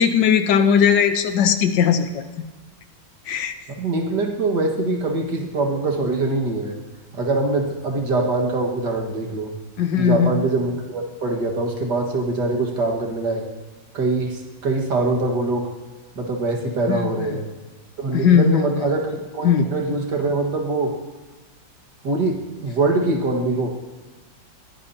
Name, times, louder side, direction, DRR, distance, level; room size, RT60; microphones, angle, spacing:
voice 1, 0.0-2.2 3.3-3.5 9.8-10.3 16.9-17.1 18.1-18.6 19.4-19.6, left 7 dB, 85° left, 8 dB, 1.6 m, -18 dB
voice 2, 3.8-6.7 7.1-9.5 9.9-13.5 13.9-15.7 16.2-17.5 18.0-20.9 22.0-23.7, right 2 dB, 70° right, 1 dB, 2.3 m, -23 dB
21.5 x 15.5 x 2.8 m, 1.3 s
omnidirectional pair, 1.9 m